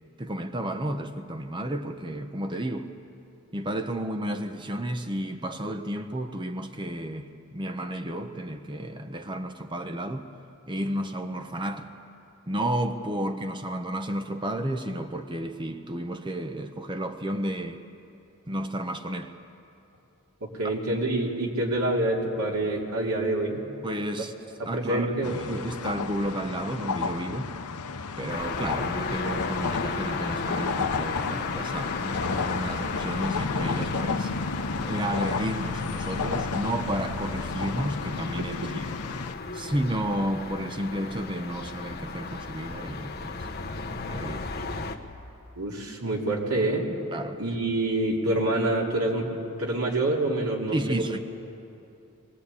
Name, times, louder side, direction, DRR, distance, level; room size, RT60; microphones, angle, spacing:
voice 1, 0.2-2.9 3.5-10.3 10.7-11.9 12.5-17.8 18.5-19.3 23.8-24.3 24.7-27.5 28.2-34.3 34.9-38.8 39.5-43.5 44.1-44.5 47.1-47.4 50.7-51.2, right 1 dB, 20° right, 0.9 m, -32 dB
voice 2, 20.4-23.6 24.6-25.3 38.4-38.7 45.6-46.8 47.4-49.3 49.6-51.0, right 1 dB, 80° right, 3.1 m, -27 dB
sound 1, 25.2-39.3, left 4 dB, 90° left, 0.8 m, -32 dB
sound 2, 28.3-45.0, left 3 dB, 45° left, 1.2 m, -35 dB
23.0 x 18.0 x 8.5 m
head